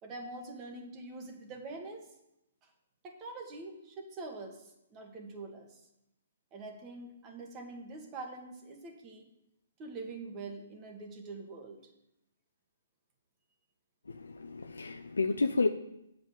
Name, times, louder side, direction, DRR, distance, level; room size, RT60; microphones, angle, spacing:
voice 1, 0.0-2.1 2.6-2.7 3.0-5.8 6.5-9.3 9.8-11.8, right 3 dB, 25° right, 2 dB, 1.8 m, -44 dB
voice 2, 14.1-15.7, left 3 dB, 90° left, 7 dB, 0.5 m, -30 dB
7.9 x 5.4 x 7.4 m, 0.83 s
hypercardioid pair, 140°, 0 cm